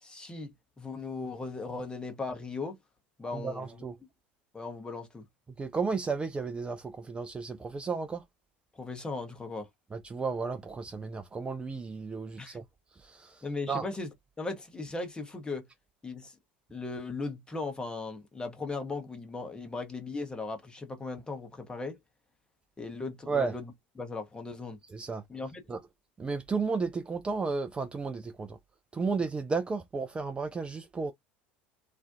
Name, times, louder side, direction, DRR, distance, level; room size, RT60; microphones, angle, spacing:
voice 1, 0.0-2.8 3.2-3.8 4.5-5.2 8.7-9.7 12.4-12.6 13.4-14.1 14.4-15.7 16.0-16.4 16.7-22.0 22.8-23.7 24.0-24.8 25.3-25.6, left 3 dB, 15° left, 0.8 m, -37 dB
voice 2, 3.2-3.9 5.6-8.2 9.9-12.6 12.9-13.8 23.3-23.6 24.9-25.2 25.7-25.8 26.2-28.6 28.9-31.1, right 4 dB, 20° right, 0.3 m, -33 dB
2.4 x 2.1 x 2.5 m
figure-of-eight pair, 70°, 6 cm